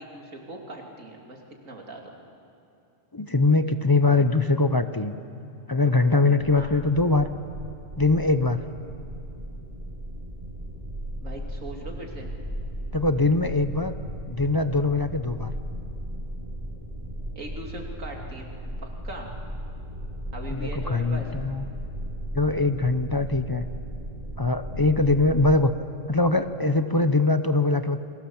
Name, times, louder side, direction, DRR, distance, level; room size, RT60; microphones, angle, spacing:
voice 1, 0.0-1.4 1.6-2.1 6.5-6.7 11.2-12.3 17.3-18.5 18.8-19.3 20.3-21.3, right 1 dB, 85° right, 1 dB, 3.2 m, -39 dB
voice 2, 3.1-5.1 5.7-7.3 8.0-8.6 12.9-14.0 14.3-15.5 20.5-21.7 22.3-23.6 24.4-25.7 26.1-28.0, left 3 dB, 25° left, 10 dB, 0.6 m, -22 dB
sound 1, 6.4-25.6, equal, 25° right, 2.5 m, -36 dB
29.5 x 23.0 x 7.3 m, 2.7 s
omnidirectional pair, 1.3 m